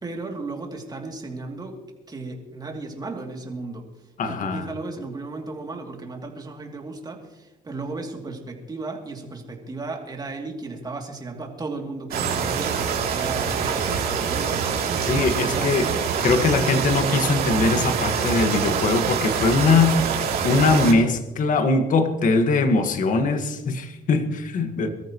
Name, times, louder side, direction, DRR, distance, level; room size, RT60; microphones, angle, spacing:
voice 1, 0.0-1.8 2.1-14.6 15.5-15.7 19.7-20.1, right 3 dB, 25° right, 1 dB, 2.8 m, -35 dB
voice 2, 4.2-4.6 15.0-15.9 16.2-20.0 20.4-24.9, left 3 dB, 50° left, 7 dB, 1.7 m, -21 dB
sound 1, 12.1-20.9, right 6 dB, 65° right, 3.0 m, -25 dB
23.0 x 13.5 x 3.1 m, 1.0 s
cardioid pair, 110°, 17 cm